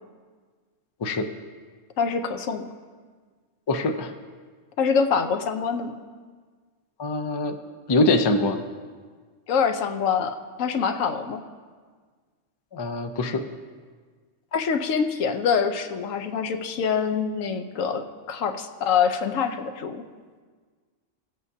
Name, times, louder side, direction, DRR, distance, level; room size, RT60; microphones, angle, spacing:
voice 1, 2.0-2.7 4.8-6.0 9.5-11.4 14.5-20.0, left 6 dB, 90° left, 7 dB, 1.1 m, -25 dB
voice 2, 3.7-4.1 7.0-7.6 7.9-8.6 12.7-13.4, left 2 dB, 45° left, 6 dB, 0.3 m, -23 dB
18.5 x 8.0 x 2.7 m, 1.5 s
omnidirectional pair, 1.3 m